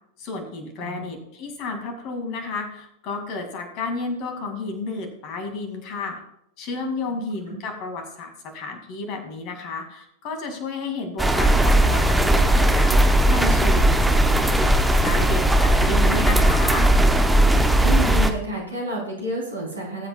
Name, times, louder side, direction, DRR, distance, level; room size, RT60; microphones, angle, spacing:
voice 1, 0.2-6.2 6.6-16.9, left 3 dB, 40° left, 5 dB, 2.4 m, -32 dB
sound 1, 11.2-18.3, right 1 dB, 5° right, 0.9 m, -18 dB
voice 2, 17.8-20.1, right 1 dB, 75° right, -2 dB, 3.7 m, -30 dB
20.0 x 8.1 x 2.4 m, 0.75 s
figure-of-eight pair, 90°, 0 cm